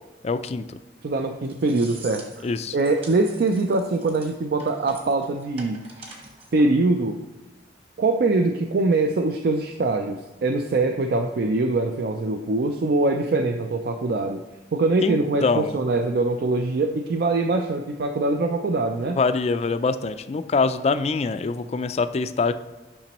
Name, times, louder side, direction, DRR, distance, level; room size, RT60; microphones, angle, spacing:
voice 1, 0.2-0.8 2.4-2.8 15.0-15.8 19.2-22.5, left 4 dB, 35° left, 11 dB, 0.3 m, -24 dB
voice 2, 1.0-2.5 2.7-5.9 6.5-7.3 8.0-14.4 14.7-19.2, right 2 dB, 55° right, 5 dB, 0.4 m, -23 dB
sound 1, 1.2-6.7, right 3 dB, 30° right, 1.3 m, -45 dB
8.7 x 6.0 x 3.0 m, 1.2 s
head